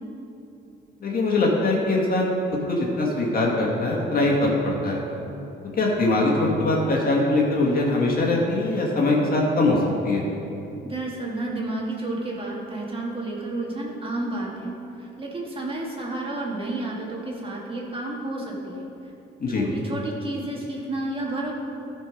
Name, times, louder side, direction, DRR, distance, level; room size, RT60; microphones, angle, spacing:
voice 1, 1.0-2.3 2.7-5.0 5.8-9.8 10.0-10.2 19.4-19.7, left 2 dB, 45° left, -2 dB, 1.9 m, -22 dB
voice 2, 10.8-14.7 15.0-18.9 19.5-21.5, right 2 dB, 25° right, -3 dB, 2.0 m, -31 dB
13.0 x 4.6 x 5.1 m, 2.9 s
cardioid pair, 90°, 20 cm